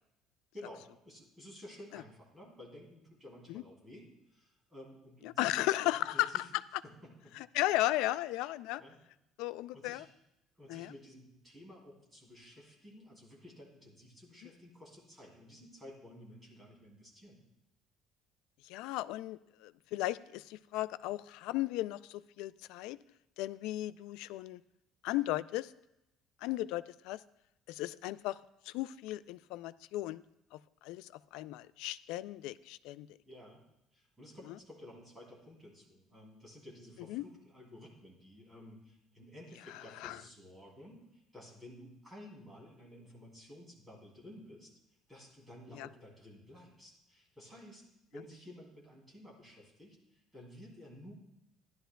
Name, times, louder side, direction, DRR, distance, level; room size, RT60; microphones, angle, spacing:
voice 1, 0.5-6.5 6.8-7.3 8.8-9.0 9.7-10.1 10.6-17.4 33.2-33.6 33.9-44.7 45.1-47.9 48.1-51.1, left 1 dB, 10° right, -3 dB, 2.7 m, -53 dB
voice 2, 5.2-6.5 7.4-8.8 9.4-10.0 10.7-10.9 18.6-23.0 23.4-24.6 25.0-25.7 26.4-27.2 27.7-28.4 28.7-30.2 30.5-33.1 37.1-37.2 40.0-40.2 45.7-45.9, left 16 dB, 80° left, 16 dB, 0.3 m, -35 dB
15.0 x 11.5 x 2.3 m, 0.86 s
cardioid pair, 175°, 0 cm